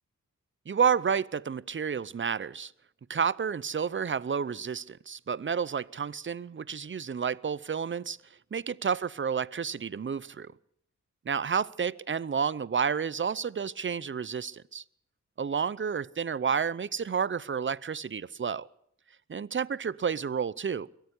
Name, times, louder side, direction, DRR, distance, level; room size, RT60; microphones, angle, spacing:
voice 1, 0.7-2.7 3.1-8.2 8.5-10.5 11.3-14.8 15.4-18.7 19.3-20.9, right 6 dB, 35° right, 0.7 m, -30 dB
22.5 x 14.5 x 8.2 m
cardioid pair, 60°, 32 cm